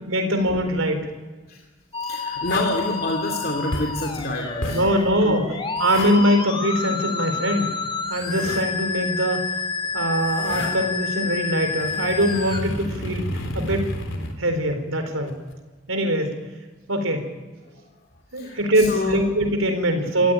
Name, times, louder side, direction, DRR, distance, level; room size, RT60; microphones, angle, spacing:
voice 1, 0.1-1.1 4.7-7.7 8.1-9.4 9.9-13.3 13.5-13.8 14.4-15.3 15.9-16.3 16.9-17.2 18.3-20.3, equal, 85° right, 6 dB, 4.2 m, -22 dB
Musical instrument, 1.9-12.6, left 4 dB, 25° left, 2.5 m, -29 dB
voice 2, 2.0-4.8 5.2-5.5 18.4-19.2, left 2 dB, 45° left, 1 dB, 2.6 m, -27 dB
sound 1, 2.4-2.8 3.7-4.0 4.6-4.9 5.8-6.2 7.7-8.7 10.0-10.8 11.3-14.3 15.3-15.5, left 1 dB, 70° left, 3.9 m, -31 dB
28.5 x 16.0 x 9.1 m, 1.2 s
head